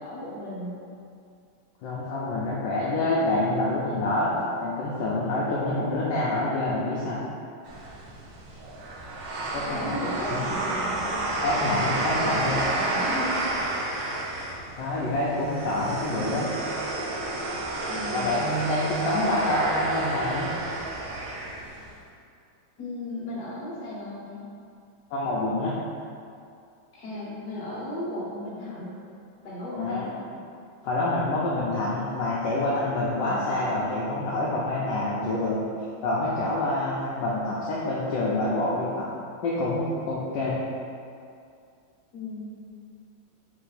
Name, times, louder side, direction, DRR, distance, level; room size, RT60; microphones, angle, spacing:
voice 1, 0.0-0.8 9.5-11.4 11.9-13.4 15.8-16.5 17.9-18.3 22.8-24.4 26.9-28.9 29.4-30.4 42.1-42.6, left 1 dB, 55° left, -7 dB, 1.5 m, -35 dB
voice 2, 1.8-4.3 4.6-7.2 9.5-10.0 11.4-12.6 14.8-16.5 18.1-20.5 25.1-25.7 29.8-30.1 30.8-35.6 36.0-39.1 39.4-40.6, left 2 dB, 75° left, -6 dB, 1.2 m, -27 dB
sound 1, 7.6-21.9, right 2 dB, 70° right, 0.9 m, -30 dB
4.3 x 2.7 x 4.0 m, 2.4 s
omnidirectional pair, 2.2 m